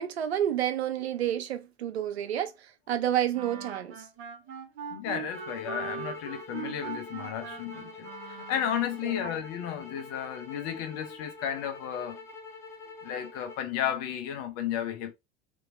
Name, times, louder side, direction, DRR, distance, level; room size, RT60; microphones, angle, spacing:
voice 1, 0.0-2.5 2.9-4.0 9.0-9.3, right 11 dB, 75° right, 0.6 m, -29 dB
Wind instrument woodwind instrument, 3.3-9.0, right 7 dB, 40° right, 1.4 m, -41 dB
voice 2, 4.9-12.2 13.0-15.1, left 9 dB, 50° left, 0.8 m, -33 dB
sound 1, 5.3-13.7, left 4 dB, 10° left, 1.1 m, -46 dB
2.9 x 2.7 x 2.5 m
figure-of-eight pair, 75°, 32 cm